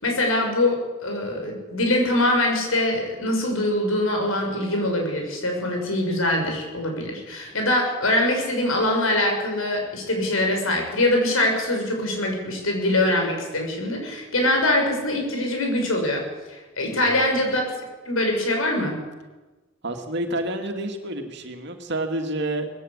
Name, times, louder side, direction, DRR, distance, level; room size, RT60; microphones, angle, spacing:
voice 1, 0.0-17.7 18.0-19.0, left 1 dB, 85° left, 2 dB, 6.6 m, -23 dB
voice 2, 16.9-17.5 19.8-22.7, right 1 dB, 55° right, 5 dB, 2.5 m, -29 dB
20.5 x 16.0 x 8.3 m, 1.2 s
head